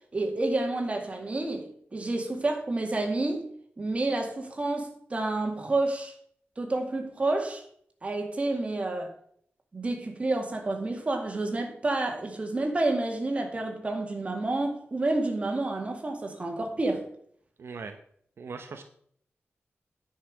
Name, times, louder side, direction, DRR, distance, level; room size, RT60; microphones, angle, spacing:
voice 1, 0.1-3.5 3.8-6.1 6.6-7.6 8.0-9.1 9.7-17.1, right 2 dB, 30° right, 2.0 m, -29 dB
voice 2, 17.6-18.0 18.4-18.8, right 5 dB, 70° right, 0.9 m, -39 dB
10.0 x 5.7 x 7.4 m
wide cardioid pair, 180°, 4 cm